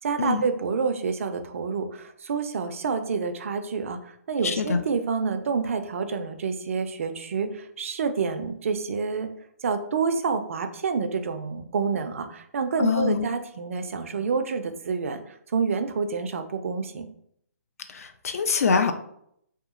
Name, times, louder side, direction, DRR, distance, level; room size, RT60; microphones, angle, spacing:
voice 1, 0.0-9.3 9.6-17.1, right 5 dB, 55° right, 8 dB, 0.3 m, -28 dB
voice 2, 4.4-4.8 12.8-13.2 17.9-18.9, left 5 dB, 65° left, 8 dB, 0.4 m, -24 dB
2.8 x 2.4 x 2.4 m, 0.71 s
hypercardioid pair, 150°, 9 cm